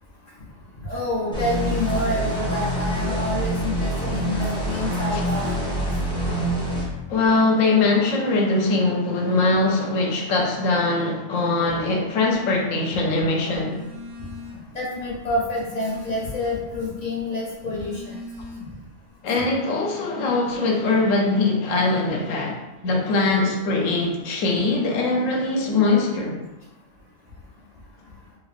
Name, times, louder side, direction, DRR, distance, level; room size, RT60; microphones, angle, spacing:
voice 1, 0.8-5.8 13.5-13.6 14.7-18.2 25.1-25.2, left 1 dB, 50° left, -4 dB, 0.5 m, -28 dB
sound 1, 1.3-6.8, right 1 dB, 5° left, 0.7 m, -26 dB
voice 2, 7.1-13.8 19.2-26.4, left 3 dB, 90° left, 0 dB, 1.0 m, -22 dB
Telephone, 13.5-14.8 15.1-16.8 17.4-18.9, left 2 dB, 55° right, 1.3 m, -40 dB
3.2 x 3.1 x 2.4 m, 1.1 s
omnidirectional pair, 1.3 m